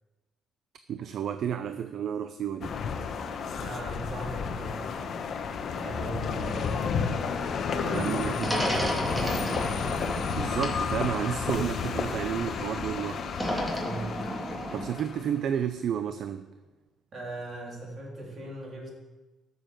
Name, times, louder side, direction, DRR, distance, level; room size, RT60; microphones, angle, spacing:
voice 1, 0.9-2.8 7.9-8.5 10.3-13.3 14.7-16.5, right 9 dB, 60° right, 10 dB, 0.6 m, -31 dB
sound 1, 2.6-15.5, left 6 dB, 55° left, 1.1 m, -32 dB
voice 2, 3.5-5.2 5.7-7.1 7.7-9.7 13.7-14.1 17.1-18.9, right 2 dB, 40° right, -1 dB, 3.1 m, -38 dB
sound 2, 8.4-12.5 13.3-15.0, equal, ahead, 2.1 m, -33 dB
12.5 x 6.9 x 7.5 m, 1.2 s
cardioid pair, 125°, 0 cm